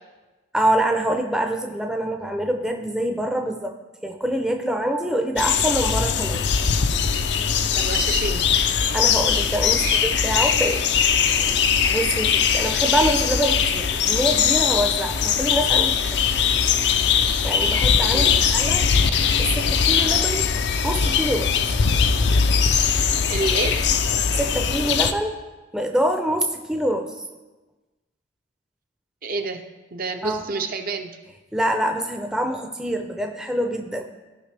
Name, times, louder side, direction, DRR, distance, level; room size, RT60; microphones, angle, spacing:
voice 1, 0.5-3.7 4.0-6.4 8.9-10.9 11.2-16.2 17.4-18.8 19.4-20.5 20.8-21.5 24.4-25.4 25.7-27.1 30.2-30.5 31.5-34.0, right 1 dB, 5° right, 3 dB, 0.5 m, -25 dB
sound 1, 5.4-25.1, left 7 dB, 65° left, 0.5 m, -21 dB
voice 2, 7.7-8.5 9.8-10.0 18.1-18.5 23.3-23.9 29.2-29.6 29.9-31.1, right 3 dB, 50° right, 5 dB, 0.6 m, -28 dB
15.0 x 5.5 x 3.3 m, 1.2 s
head